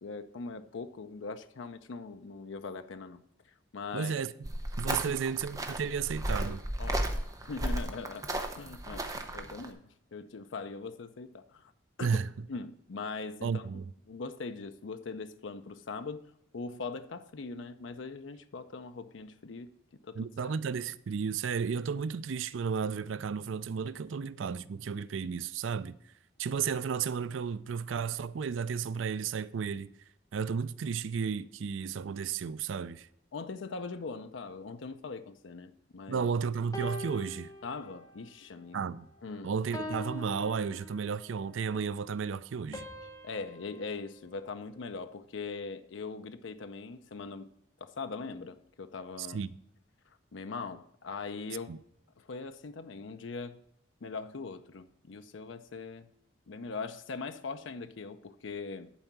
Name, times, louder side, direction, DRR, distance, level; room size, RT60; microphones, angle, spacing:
voice 1, 0.0-3.2 3.7-4.1 4.9-5.2 6.8-9.8 10.1-11.7 12.0-12.2 12.5-13.6 14.1-16.2 16.5-19.7 20.0-20.5 33.3-36.3 37.6-38.8 39.2-39.5 43.2-47.5 47.8-49.4 50.3-51.8 52.2-53.6 54.0-56.1 56.5-58.9, left 4 dB, 80° left, 0.6 m, -41 dB
voice 2, 3.9-4.3 4.8-6.6 12.0-12.3 13.4-13.8 20.2-26.0 26.4-29.9 30.3-33.1 36.1-37.5 38.7-39.1 39.4-42.8 49.2-49.5 51.7-51.8, right 6 dB, 85° right, 0.4 m, -33 dB
sound 1, 4.4-9.7, right 1 dB, 20° right, 0.9 m, -34 dB
sound 2, 36.7-38.3 38.7-39.1 39.7-41.4 42.7-45.1, left 1 dB, 20° left, 1.1 m, -43 dB
11.0 x 4.5 x 7.2 m
head